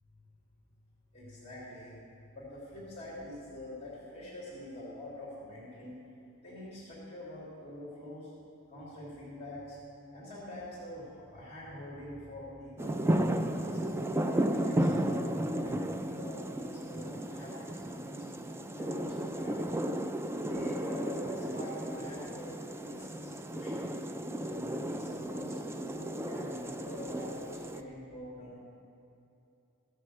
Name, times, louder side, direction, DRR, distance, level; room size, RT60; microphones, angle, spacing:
voice 1, 1.1-2.0 2.3-6.0 6.4-8.3 8.7-9.8 10.1-13.8 14.4-18.2 18.7-19.8 20.3-23.9 24.4-28.6, left 1 dB, 30° left, -8 dB, 2.8 m, -45 dB
sound 1, 12.8-27.8, right 1 dB, 10° right, 0.3 m, -34 dB
15.0 x 6.5 x 6.7 m, 2.7 s
head